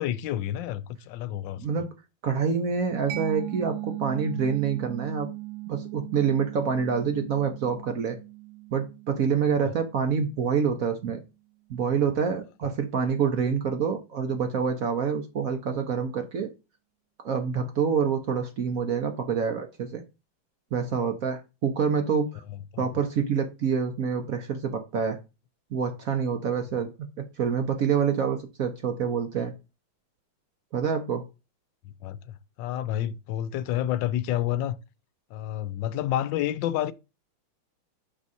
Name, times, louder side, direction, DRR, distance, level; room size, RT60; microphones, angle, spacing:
voice 1, 0.0-1.6 9.6-9.7 22.5-22.9 31.8-34.8 35.3-36.9, left 12 dB, 75° left, 1.2 m, -29 dB
voice 2, 1.6-1.9 2.2-5.3 5.7-8.2 8.7-11.2 11.7-16.5 17.2-20.0 20.7-22.4 22.8-25.2 25.7-26.9 27.4-29.5 30.7-31.2, right 6 dB, 60° right, 0.9 m, -27 dB
Mallet percussion, 3.1-10.5, right 19 dB, 80° right, 1.4 m, -39 dB
6.2 x 4.7 x 4.1 m
omnidirectional pair, 2.2 m